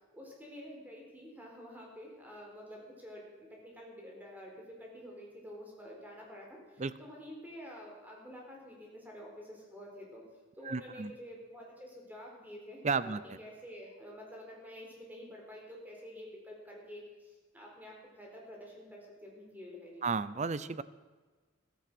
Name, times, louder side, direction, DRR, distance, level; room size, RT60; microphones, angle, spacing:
voice 1, 0.1-10.2 10.5-20.0, equal, 10° right, -2 dB, 4.1 m, -49 dB
voice 2, 10.6-11.1 12.8-13.2 20.0-20.8, right 4 dB, 35° right, 16 dB, 0.5 m, -32 dB
15.0 x 14.5 x 6.2 m, 1.3 s
head